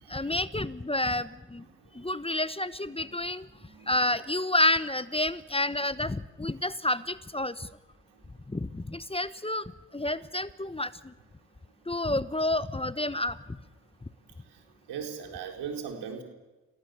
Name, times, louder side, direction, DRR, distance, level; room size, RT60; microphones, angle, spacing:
voice 1, 0.1-1.6 2.0-3.4 3.9-7.7 8.5-9.6 9.9-10.9 11.9-13.4, left 1 dB, 15° left, 15 dB, 1.1 m, -29 dB
voice 2, 3.6-3.9 6.6-6.7 14.9-16.2, right 7 dB, 85° right, 3 dB, 4.1 m, -39 dB
28.0 x 18.0 x 8.2 m, 1.2 s
supercardioid pair, 45°, 39 cm